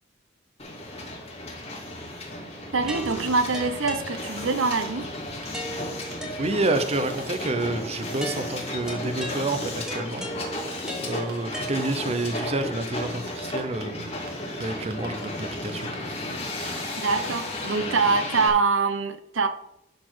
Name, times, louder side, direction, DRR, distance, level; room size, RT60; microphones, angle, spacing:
Hiss, 0.6-18.5, left 1 dB, 35° left, 2.4 m, -34 dB
voice 1, 2.7-5.1 17.0-19.5, right 4 dB, 85° right, 9 dB, 0.9 m, -24 dB
sound 1, 2.9-4.7 5.5-7.0 8.2-12.3, right 1 dB, 5° right, 1.5 m, -38 dB
sound 2, 3.2-3.3 3.6-3.7 4.1-4.2 4.9-5.0 5.4-5.5 6.1-6.2 6.6-6.8 7.1-7.4 8.0-8.2 8.6-8.7 9.5-9.9 10.2-10.9 11.2-11.9 12.4-12.6 13.3-13.8 14.3-14.4 14.6-16.1 16.6-16.7 17.0-17.3 17.6-17.7, right 5 dB, 55° right, 2.2 m, -42 dB
voice 2, 6.4-10.3 11.0-14.2 14.6-15.9, right 2 dB, 35° right, 9 dB, 0.7 m, -29 dB
11.5 x 4.2 x 6.2 m, 0.81 s
head